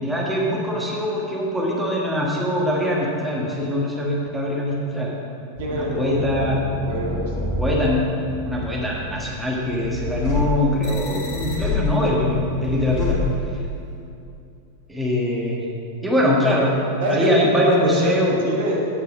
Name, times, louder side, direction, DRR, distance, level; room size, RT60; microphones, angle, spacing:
voice 1, 0.0-5.1 5.7-6.6 7.6-8.0 8.4-13.2 14.9-15.6 16.0-16.8 17.1-18.3, left 1 dB, 5° right, -4 dB, 1.6 m, -22 dB
sound 1, 5.6-13.9, left 2 dB, 35° left, 2.1 m, -28 dB
voice 2, 5.6-7.6 17.0-18.9, right 1 dB, 50° right, -2 dB, 1.4 m, -24 dB
8.2 x 5.5 x 6.0 m, 2.6 s
figure-of-eight pair, 90°, 0 cm